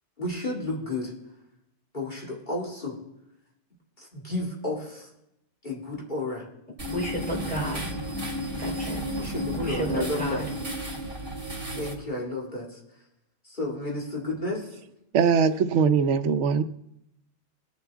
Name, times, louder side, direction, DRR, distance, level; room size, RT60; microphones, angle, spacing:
voice 1, 0.2-1.1 1.9-3.0 4.0-5.1 5.6-6.5 9.2-10.4 11.8-12.8 13.4-14.8, left 2 dB, 45° left, -2 dB, 2.4 m, -32 dB
sound 1, 6.8-11.9, right 1 dB, 50° right, 2.9 m, -32 dB
voice 2, 6.9-7.9 8.6-9.0 9.5-10.5, equal, 5° left, -3 dB, 3.5 m, -32 dB
voice 3, 15.1-16.6, right 6 dB, 85° right, 11 dB, 1.0 m, -21 dB
21.5 x 7.3 x 3.5 m, 0.83 s
omnidirectional pair, 1.2 m